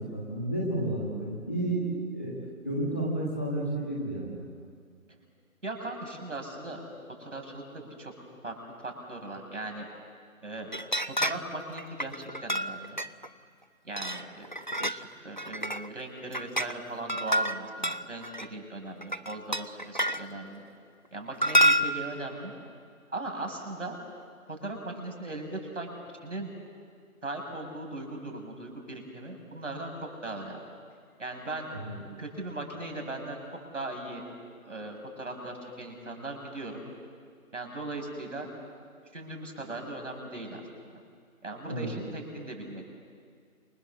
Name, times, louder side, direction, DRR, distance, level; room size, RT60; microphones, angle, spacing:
voice 1, 0.0-2.3 2.6-4.5 31.7-32.0 41.7-41.9, right 1 dB, 10° left, -5 dB, 1.4 m, -31 dB
voice 2, 5.6-6.8 7.2-8.1 8.4-9.9 10.4-10.7 11.2-13.0 13.8-14.5 14.8-20.6 21.1-22.5 23.1-24.0 24.5-25.9 26.2-26.5 27.2-29.9 30.2-30.6 31.2-31.7 32.2-33.4 33.7-34.2 34.6-36.8 37.5-38.5 39.1-40.6 41.4-42.9, right 2 dB, 55° right, 3 dB, 7.0 m, -38 dB
sound 1, 10.7-11.5 11.8-13.3 14.0-15.1 15.4-15.9 16.2-16.7 17.1-18.5 19.0-20.2 21.4-22.1, equal, 35° left, 0.6 m, -28 dB
28.5 x 28.0 x 7.5 m, 2.1 s
figure-of-eight pair, 175°, 43 cm